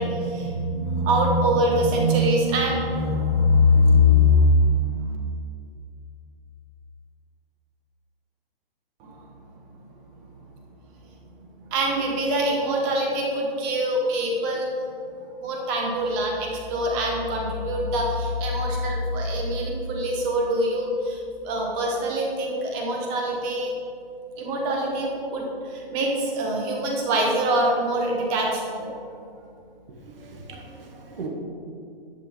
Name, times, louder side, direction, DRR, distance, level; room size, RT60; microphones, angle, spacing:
voice 1, 0.0-5.2 9.0-9.2 11.7-14.7 15.4-23.7 24.4-29.1, left 1 dB, 15° right, 0 dB, 1.0 m, -23 dB
voice 2, 29.9-31.3, right 4 dB, 70° right, 0 dB, 2.0 m, -39 dB
11.0 x 8.1 x 3.5 m, 2.5 s
hypercardioid pair, 175°, 30 cm